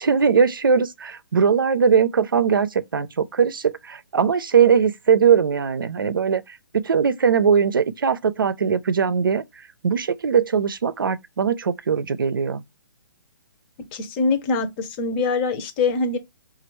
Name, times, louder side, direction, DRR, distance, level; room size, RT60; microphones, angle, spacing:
voice 1, 0.0-6.4 6.7-9.4 9.8-12.6, right 6 dB, 80° right, 0.5 m, -20 dB
voice 2, 13.9-16.2, left 4 dB, 30° left, 0.8 m, -23 dB
5.1 x 2.4 x 3.0 m
figure-of-eight pair, 140°, 11 cm